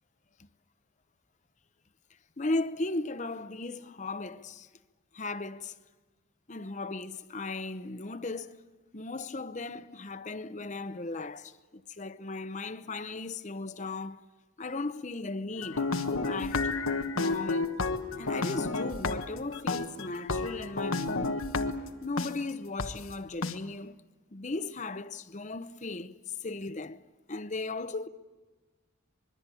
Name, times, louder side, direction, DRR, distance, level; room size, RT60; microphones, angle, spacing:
voice 1, 2.4-4.7 5.1-5.8 6.5-8.6 8.9-14.2 14.6-16.7 17.1-17.8 18.2-21.5 22.0-24.0 24.3-26.2 26.4-27.0 27.3-28.1, left 3 dB, 35° left, 0.8 m, -36 dB
sound 1, 15.6-22.3 22.8-22.9 23.4-23.5, left 3 dB, 85° left, 1.3 m, -31 dB
25.5 x 22.0 x 8.5 m
head